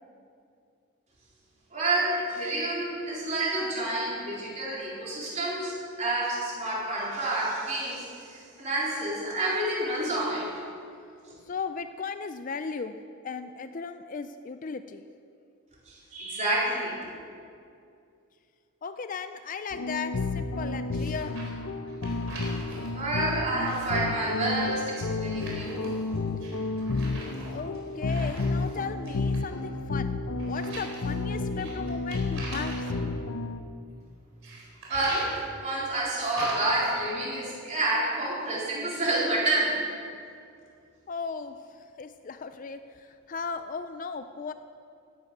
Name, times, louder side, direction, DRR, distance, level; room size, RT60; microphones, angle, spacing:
voice 1, 1.7-10.5 15.9-17.0 22.4-25.9 34.9-39.8, right 2 dB, 30° right, -5 dB, 4.0 m, -29 dB
voice 2, 11.4-13.0 13.2-15.0 18.8-21.5 27.4-33.1 41.1-41.7 42.0-44.5, left 5 dB, 35° left, 10 dB, 0.4 m, -36 dB
sound 1, 19.7-33.6, left 3 dB, 75° left, 0.7 m, -31 dB
sound 2, 20.9-21.6 21.9-22.9 23.5-24.3 25.3-26.0 26.4-28.8 29.0-29.6 30.4-32.9 34.4-35.4 36.1-36.9, right 2 dB, 55° right, 4.2 m, -42 dB
16.5 x 9.7 x 6.5 m, 2.5 s
head